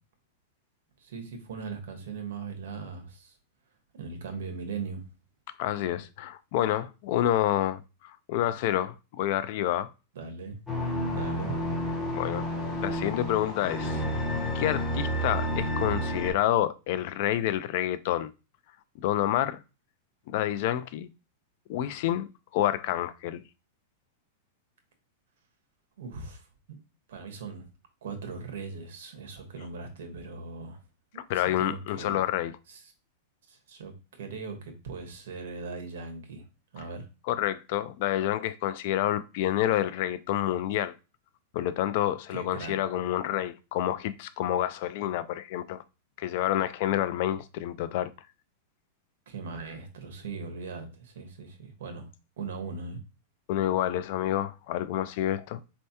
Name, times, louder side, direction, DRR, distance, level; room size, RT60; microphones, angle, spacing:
voice 1, 1.0-3.3 3.9-5.0 10.1-10.6 11.1-11.6 26.0-26.5 27.1-27.7 28.0-30.8 31.1-32.2 32.7-32.8 33.5-33.9 34.2-36.4 36.7-37.1 42.3-42.8 49.3-52.1 52.4-53.0, right 4 dB, 75° right, 1.3 m, -39 dB
voice 2, 5.6-9.9 12.1-12.5 12.8-14.1 14.5-18.3 19.0-19.6 20.3-21.1 21.7-23.4 31.2-32.5 37.3-40.9 41.5-45.8 46.2-48.1 53.5-55.6, left 12 dB, 45° left, 0.3 m, -28 dB
sound 1, 10.7-16.3, equal, 5° left, 1.0 m, -30 dB
4.3 x 3.3 x 2.8 m
supercardioid pair, 165°, 0 cm